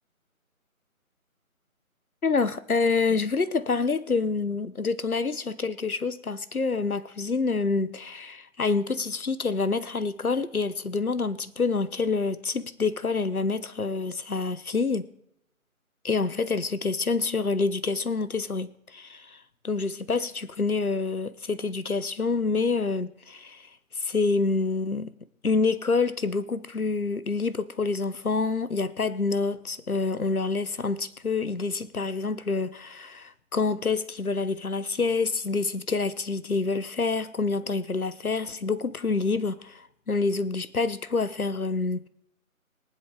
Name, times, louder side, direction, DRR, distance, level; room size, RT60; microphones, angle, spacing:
voice 1, 2.2-15.1 16.0-25.1 25.4-42.1, left 4 dB, 80° left, 1.2 m, -27 dB
22.5 x 7.8 x 4.0 m
figure-of-eight pair, 155°, 43 cm